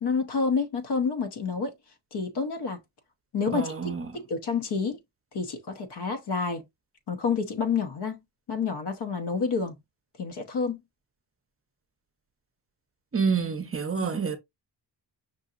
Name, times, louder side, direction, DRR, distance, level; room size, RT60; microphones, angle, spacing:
voice 1, 0.0-1.7 2.1-2.8 3.3-5.0 5.3-6.6 7.1-8.2 8.5-9.8 10.2-10.8 14.0-14.1, left 5 dB, 65° left, 1.0 m, -29 dB
voice 2, 3.5-4.0 13.1-14.4, right 5 dB, 30° right, 0.6 m, -27 dB
5.5 x 2.8 x 2.4 m
wide cardioid pair, 125°, 44 cm